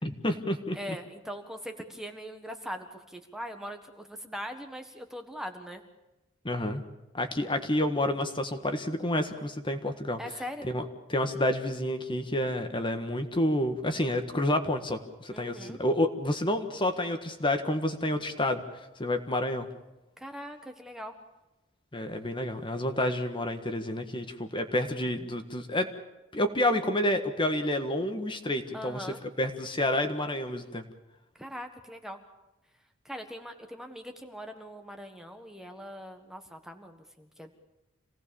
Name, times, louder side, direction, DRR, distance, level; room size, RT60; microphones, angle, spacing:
voice 1, 0.0-0.8 6.4-6.8 7.1-10.2 10.7-10.8 11.1-19.7 21.9-25.9 26.3-29.1 29.4-30.8, left 1 dB, 25° left, 6 dB, 1.6 m, -29 dB
voice 2, 0.7-5.8 10.2-10.7 15.3-15.8 20.2-21.1 28.7-29.2 31.3-32.2 33.0-37.5, equal, ahead, 5 dB, 1.5 m, -41 dB
27.0 x 18.0 x 7.1 m, 1.0 s
head